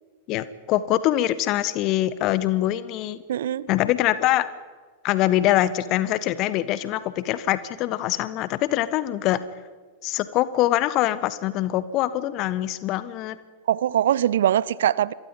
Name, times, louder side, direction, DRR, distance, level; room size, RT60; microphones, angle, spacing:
voice 1, 0.3-3.2 3.7-4.5 5.0-9.4 10.0-13.4, left 14 dB, 40° left, 1.3 m, -24 dB
voice 2, 3.3-3.7 13.7-15.1, right 11 dB, 60° right, 0.6 m, -22 dB
28.0 x 23.0 x 5.5 m
figure-of-eight pair, 90°, 0 cm